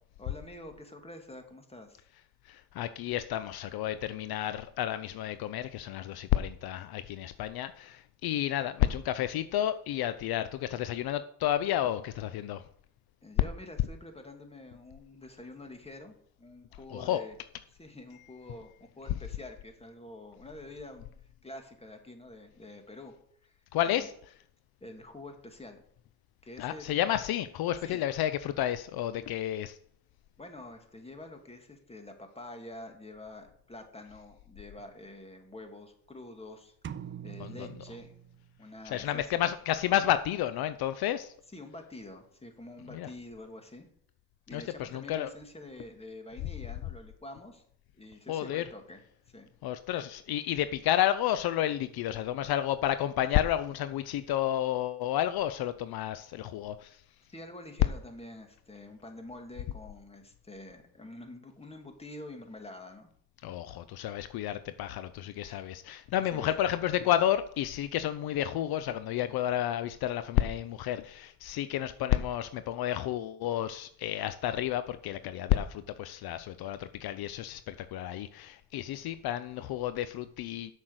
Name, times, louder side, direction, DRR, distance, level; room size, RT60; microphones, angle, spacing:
voice 1, 0.2-2.0 13.2-17.4 17.8-21.1 21.4-23.1 23.4-23.6 23.8-24.1 24.8-25.8 26.4-26.9 27.8-28.0 30.4-36.7 37.2-38.1 38.6-39.4 41.5-43.9 44.5-47.6 47.9-49.5 57.3-63.1 65.4-65.7 66.3-66.6, left 1 dB, 15° left, 5 dB, 2.2 m, -47 dB
voice 2, 2.5-12.6 16.9-17.2 23.7-24.1 26.6-29.8 37.4-37.7 38.9-41.3 42.9-43.1 44.5-45.3 48.3-48.6 49.6-57.0 63.4-80.7, left 12 dB, 65° left, 12 dB, 0.6 m, -31 dB
sound 1, 36.8-38.8, right 9 dB, 30° right, 0.5 m, -44 dB
7.4 x 6.4 x 7.9 m, 0.66 s
supercardioid pair, 80°, 39 cm